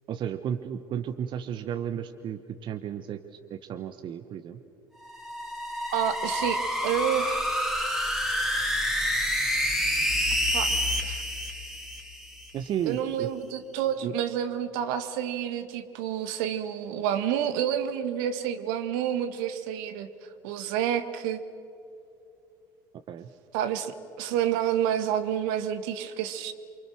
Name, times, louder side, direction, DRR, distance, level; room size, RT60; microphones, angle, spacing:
voice 1, 0.1-3.2 3.5-4.6 12.5-13.3 14.0-14.1 23.1-23.3, right 9 dB, 45° right, 8 dB, 1.2 m, -33 dB
sound 1, 5.0-12.5, equal, ahead, 3.2 m, -28 dB
voice 2, 5.9-7.4 10.5-10.7 11.0-11.2 12.9-20.1 20.4-21.4 23.5-26.5, right 9 dB, 65° right, 9 dB, 1.6 m, -29 dB
28.5 x 24.5 x 6.4 m, 2.7 s
figure-of-eight pair, 65°, 11 cm